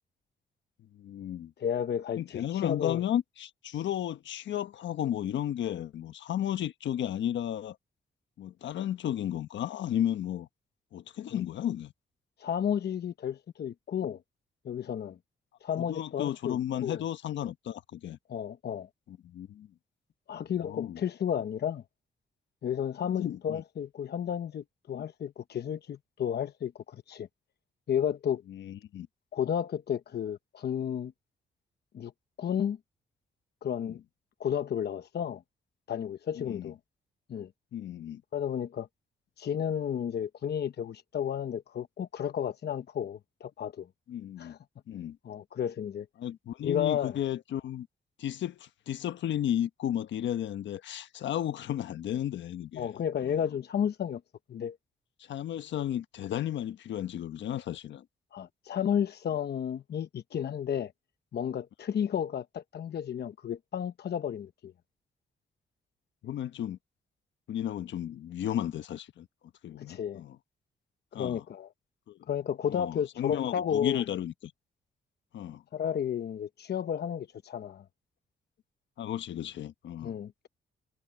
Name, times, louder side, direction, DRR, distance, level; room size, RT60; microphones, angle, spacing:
voice 1, 0.9-1.5 2.2-7.8 8.4-10.5 10.9-11.9 15.8-18.2 19.1-19.7 20.3-21.0 23.0-23.6 24.9-25.0 28.5-29.1 33.8-34.0 36.4-36.7 37.7-38.2 44.1-44.6 44.9-45.2 46.2-47.9 48.2-53.4 55.3-58.0 66.2-66.8 67.5-69.3 69.6-70.4 71.1-71.4 72.1-72.2 72.7-74.5 75.3-75.6 79.0-80.1, left 11 dB, 80° left, 1.3 m, -34 dB
voice 2, 1.6-3.0 11.3-11.4 12.4-14.2 14.6-15.2 15.6-17.0 18.3-18.9 20.3-21.8 22.6-27.3 27.9-28.4 29.3-31.1 31.9-32.1 32.4-32.8 33.6-34.0 34.4-35.4 35.9-36.8 37.3-37.5 38.3-38.9 39.4-43.9 44.4-44.6 45.2-46.1 46.6-47.2 52.8-54.2 54.5-54.8 58.3-60.9 61.3-64.7 69.8-70.2 71.1-71.7 72.3-74.0 75.7-77.8 80.0-80.5, left 9 dB, 60° left, 1.0 m, -32 dB
cardioid pair, 65°, 19 cm